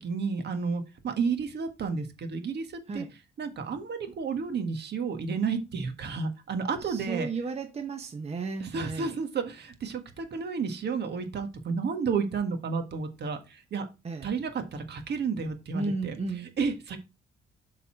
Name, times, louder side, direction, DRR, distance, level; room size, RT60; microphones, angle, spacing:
voice 1, 0.0-2.7 2.9-3.0 3.4-7.3 8.6-13.9 14.2-16.1 16.6-17.0, right 5 dB, 55° right, 1.7 m, -31 dB
voice 2, 6.8-9.2 14.0-14.3 15.7-16.5, right 4 dB, 30° right, 1.0 m, -34 dB
7.2 x 4.1 x 4.4 m
cardioid pair, 90°, 20 cm